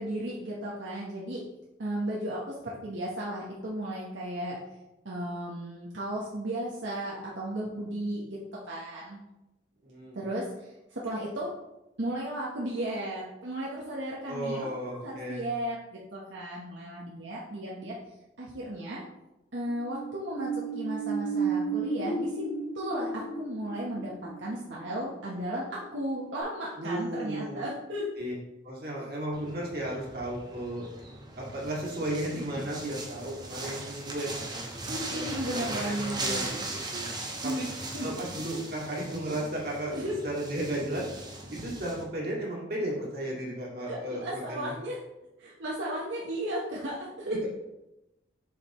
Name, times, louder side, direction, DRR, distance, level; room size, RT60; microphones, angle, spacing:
voice 1, 0.0-1.4 1.8-4.6 5.0-8.4 8.7-9.2 10.1-11.5 12.0-17.9 18.4-19.0 19.5-22.4 22.7-24.1 24.4-28.1 34.9-36.5 37.4-37.6 37.9-38.1 39.9-40.2 43.9-45.0 45.4-47.4, right 1 dB, 80° right, -5 dB, 1.1 m, -35 dB
voice 2, 9.8-10.2 14.3-15.5 26.8-27.7 28.2-28.3 28.6-30.8 31.4-34.8 35.1-36.6 36.9-37.1 37.4-37.7 38.0-39.9 40.2-41.1 41.5-44.7 47.2-47.5, right 1 dB, 55° right, -4 dB, 2.1 m, -34 dB
sound 1, 19.7-26.0 26.4-26.5, right 4 dB, 45° left, 1.1 m, -34 dB
sound 2, 29.3-42.0, right 2 dB, 25° right, 1.0 m, -39 dB
7.6 x 5.1 x 3.0 m, 0.94 s
head